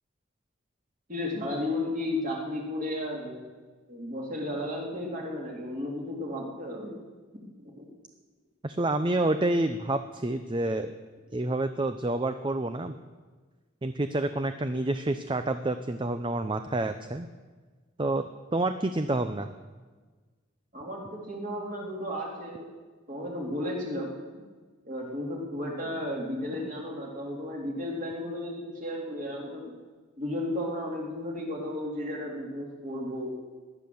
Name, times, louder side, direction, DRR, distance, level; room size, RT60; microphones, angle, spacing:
voice 1, 1.1-3.4 3.9-6.9 7.6-7.9 20.7-22.7 23.1-24.1 24.8-29.7 30.2-33.3, left 1 dB, 40° right, -2 dB, 3.3 m, -34 dB
voice 2, 8.6-10.9 11.3-13.0 13.8-17.3 18.0-19.5, right 2 dB, 25° right, 9 dB, 0.5 m, -28 dB
18.0 x 11.5 x 7.0 m, 1.4 s
head